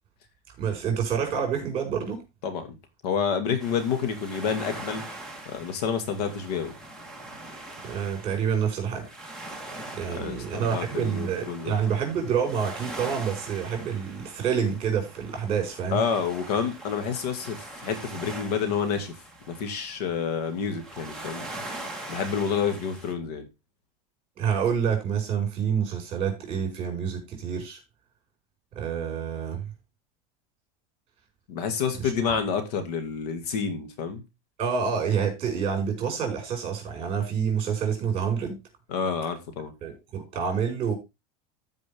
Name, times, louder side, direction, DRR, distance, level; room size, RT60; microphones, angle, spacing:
voice 1, 0.6-2.2 7.8-9.0 9.9-16.0 24.4-27.8 28.7-29.6 32.0-32.3 34.6-38.6 39.8-40.9, right 7 dB, 30° right, 5.2 m, -28 dB
voice 2, 3.0-5.1 5.5-6.7 10.0-11.7 15.9-19.1 19.5-21.5 22.1-23.5 31.5-34.2 38.9-39.7, left 6 dB, 80° left, 2.3 m, -29 dB
sound 1, 3.6-23.1, right 2 dB, 5° left, 1.8 m, -42 dB
14.5 x 5.2 x 3.6 m
supercardioid pair, 150°, 19 cm